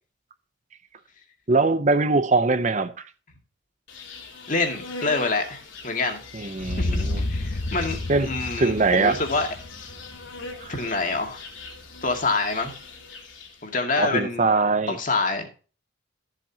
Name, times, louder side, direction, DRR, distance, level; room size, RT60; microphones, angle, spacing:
voice 1, 1.5-2.9 6.3-7.2 8.1-8.3 8.6-9.2 10.6-10.7 14.0-15.0, right 3 dB, 40° right, 0.7 m, -22 dB
Insect, 3.9-13.7, left 3 dB, 80° left, 2.9 m, -41 dB
voice 2, 4.5-6.2 6.6-9.5 10.7-11.4 12.0-12.7 13.6-14.5 14.9-15.5, left 3 dB, 45° left, 2.3 m, -26 dB
sound 1, 6.6-10.6, left 2 dB, 60° left, 0.8 m, -30 dB
13.5 x 7.7 x 2.9 m
head